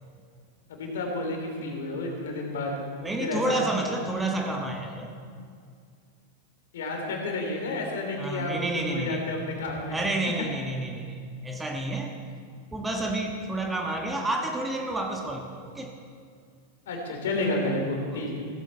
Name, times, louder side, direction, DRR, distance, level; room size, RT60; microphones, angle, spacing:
voice 1, 0.7-2.7 3.2-3.6 6.7-9.9 10.2-10.3 16.9-18.4, left 2 dB, 60° left, 1 dB, 3.0 m, -31 dB
voice 2, 3.0-5.1 8.2-9.2 9.9-11.2 11.4-12.1 12.7-15.9 18.1-18.2, right 2 dB, 10° right, 2 dB, 1.4 m, -30 dB
16.0 x 13.5 x 4.5 m, 2.2 s
figure-of-eight pair, 90°, 0 cm